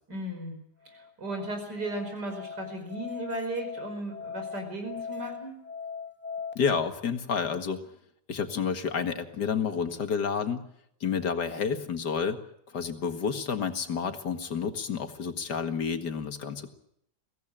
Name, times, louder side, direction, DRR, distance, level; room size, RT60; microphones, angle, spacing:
voice 1, 0.1-0.6 0.9-5.6, right 1 dB, 90° right, 5 dB, 5.6 m, -35 dB
Musical instrument, 0.9-6.5, left 6 dB, 5° left, 1.3 m, -40 dB
voice 2, 6.6-7.8 8.3-10.6 11.0-12.4 12.7-16.7, left 6 dB, 85° left, 7 dB, 2.4 m, -30 dB
23.0 x 17.0 x 8.9 m, 0.73 s
omnidirectional pair, 1.7 m